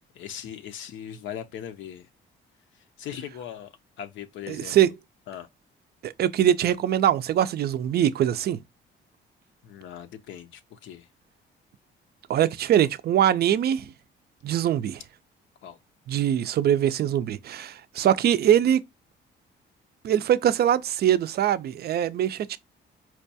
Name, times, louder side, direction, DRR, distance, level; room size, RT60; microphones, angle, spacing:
voice 1, 0.1-2.1 3.0-4.9 5.3-5.5 9.6-11.1 15.6-15.8, left 9 dB, 75° left, 0.5 m, -39 dB
voice 2, 4.5-4.9 6.0-8.6 12.3-13.8 14.4-15.0 16.1-18.8 20.0-22.6, right 10 dB, 55° right, 0.4 m, -22 dB
4.4 x 2.2 x 2.6 m
cardioid pair, 90°, 20 cm